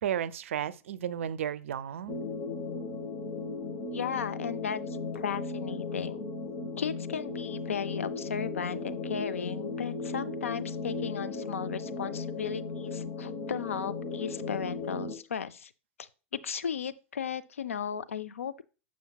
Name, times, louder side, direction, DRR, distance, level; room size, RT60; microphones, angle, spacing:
voice 1, 0.0-2.2, right 9 dB, 70° right, 0.4 m, -33 dB
sound 1, 2.1-15.1, left 3 dB, 50° left, 1.0 m, -36 dB
voice 2, 3.9-4.8 5.1-6.3 6.8-15.7 16.0-16.1 16.4-18.6, left 7 dB, 85° left, 0.4 m, -35 dB
6.9 x 6.2 x 2.3 m
hypercardioid pair, 100°, 7 cm